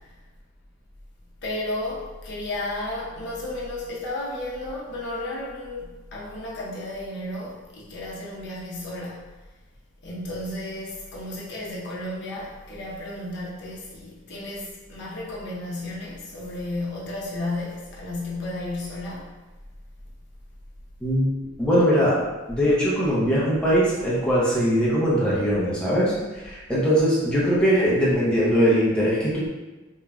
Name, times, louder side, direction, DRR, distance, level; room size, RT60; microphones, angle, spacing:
voice 1, 1.4-9.3 10.0-19.3, left 1 dB, 60° left, -5 dB, 0.6 m, -33 dB
voice 2, 21.0-22.2 22.5-26.1 26.4-29.5, equal, 5° left, -8 dB, 0.6 m, -21 dB
2.9 x 2.2 x 2.3 m, 1.2 s
head